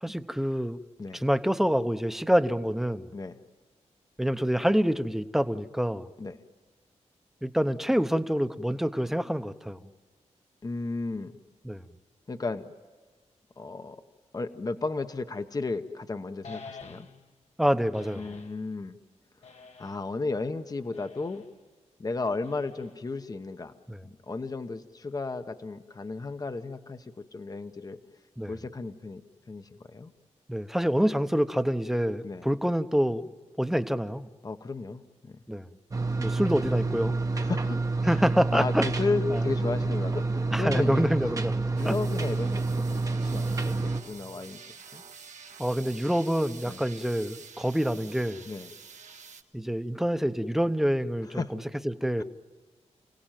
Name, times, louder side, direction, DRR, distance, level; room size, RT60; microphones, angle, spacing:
voice 1, 0.0-0.8 1.1-3.1 4.2-6.1 7.4-9.8 11.6-11.8 17.6-18.3 23.9-24.0 28.4-28.5 30.5-33.3 33.6-34.3 35.5-35.7 36.2-37.1 38.0-38.8 39.3-39.4 40.5-42.0 45.6-48.4 49.5-51.4 51.8-52.2, equal, 5° right, 10 dB, 0.9 m, -26 dB
voice 2, 10.6-11.4 12.3-12.6 13.6-14.0 14.3-17.1 18.1-19.0 19.8-21.4 22.0-23.7 24.3-28.0 28.5-29.2 29.5-30.1 32.2-32.4 34.4-35.4 37.3-37.8 38.1-38.2 38.5-41.4 41.7-44.6 44.9-45.0 46.7-46.8 48.5-48.7 51.2-51.5 52.2-52.3, left 3 dB, 30° left, 9 dB, 0.9 m, -34 dB
sound 1, 16.4-17.4 17.9-18.6 19.4-20.2 20.9-21.5 22.4-23.1, left 4 dB, 65° left, 1.3 m, -48 dB
sound 2, 35.9-44.0, right 3 dB, 30° right, 1.0 m, -28 dB
sound 3, 41.8-49.4, right 5 dB, 80° right, 1.5 m, -48 dB
29.5 x 17.5 x 9.1 m, 1.4 s
wide cardioid pair, 105°, 12 cm